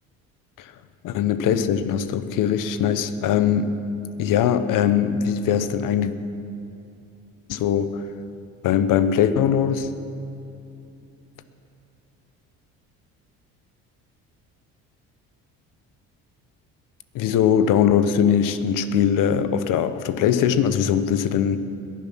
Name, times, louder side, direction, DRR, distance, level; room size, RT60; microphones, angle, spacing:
voice 1, 1.0-3.8 4.2-6.1 7.5-8.0 8.6-9.9 17.1-21.6, left 8 dB, 65° left, 12 dB, 0.9 m, -21 dB
21.5 x 7.4 x 5.9 m, 2.6 s
supercardioid pair, 85°, 34 cm